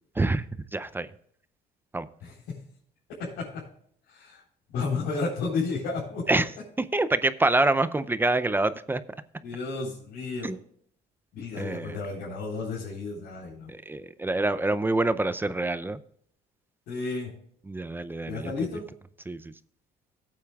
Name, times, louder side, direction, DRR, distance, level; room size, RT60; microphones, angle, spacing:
voice 1, 0.7-1.1 1.9-2.1 6.3-6.4 6.9-9.0 10.4-10.6 11.6-11.9 13.7-16.0 17.7-18.5 19.3-19.4, right 2 dB, 10° right, 14 dB, 0.5 m, -26 dB
voice 2, 2.2-2.6 3.2-3.7 4.1-4.4 4.7-6.4 9.4-10.6 11.3-13.7 16.9-17.3 18.3-18.9, left 4 dB, 90° left, -7 dB, 3.9 m, -32 dB
17.0 x 8.5 x 2.4 m, 0.64 s
cardioid pair, 110°, 17 cm